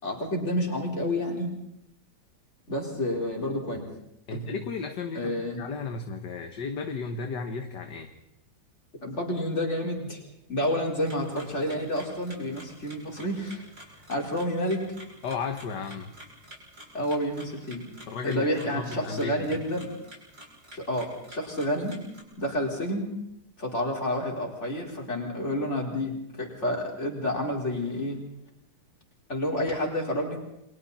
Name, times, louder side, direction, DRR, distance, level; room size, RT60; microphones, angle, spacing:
voice 1, 0.0-1.5 2.7-3.9 4.3-4.4 5.1-5.6 9.0-10.2 10.5-13.6 14.1-14.8 16.9-17.8 18.2-19.9 20.7-22.0 22.4-23.1 23.6-28.2 29.3-30.4, left 1 dB, 35° left, 0 dB, 4.8 m, -29 dB
voice 2, 4.3-8.1 15.2-16.2 18.1-19.6, left 4 dB, 60° left, 6 dB, 1.9 m, -34 dB
sound 1, 11.0-22.2, right 1 dB, 35° right, 7.2 m, -49 dB
29.5 x 24.5 x 4.2 m, 0.81 s
omnidirectional pair, 2.2 m